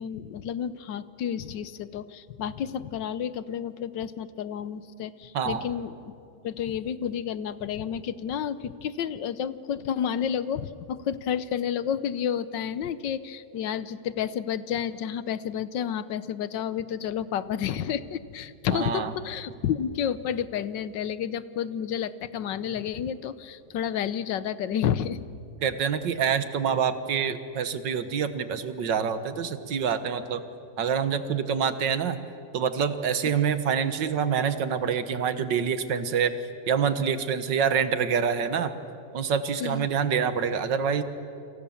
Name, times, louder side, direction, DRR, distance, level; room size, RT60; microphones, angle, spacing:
voice 1, 0.0-6.1 6.4-25.2 26.2-26.3 39.6-39.9, left 9 dB, 80° left, 15 dB, 1.5 m, -30 dB
voice 2, 5.3-5.7 18.7-19.1 25.6-30.4 30.8-32.2 32.5-36.3 36.7-38.7 39.1-41.0, right 7 dB, 80° right, 11 dB, 1.9 m, -26 dB
29.0 x 26.5 x 7.2 m, 2.6 s
omnidirectional pair, 1.9 m